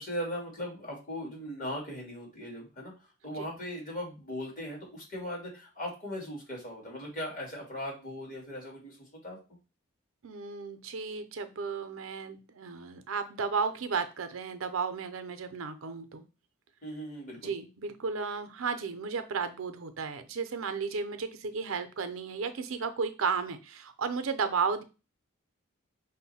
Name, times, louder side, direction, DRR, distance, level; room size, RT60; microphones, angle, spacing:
voice 1, 0.0-9.4 16.8-17.5, equal, 40° left, -2 dB, 2.0 m, -39 dB
voice 2, 10.2-16.2 17.4-24.8, right 5 dB, 85° right, 9 dB, 0.6 m, -34 dB
5.2 x 2.2 x 4.1 m, 0.30 s
head